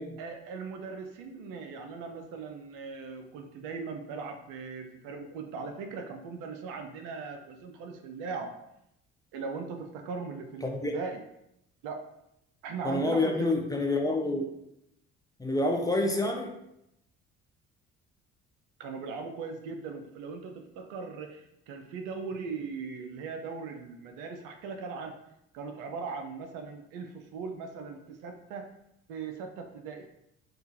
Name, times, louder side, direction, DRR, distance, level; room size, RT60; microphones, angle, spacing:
voice 1, 0.2-8.5 9.3-11.2 11.8-12.0 12.6-13.5 18.8-25.2 25.5-28.7 29.1-30.1, right 4 dB, 60° right, 5 dB, 0.6 m, -39 dB
voice 2, 10.6-11.0 12.8-14.5 15.4-16.5, left 2 dB, 10° left, 1 dB, 0.5 m, -28 dB
3.7 x 2.3 x 2.7 m, 0.80 s
hypercardioid pair, 55°, 35 cm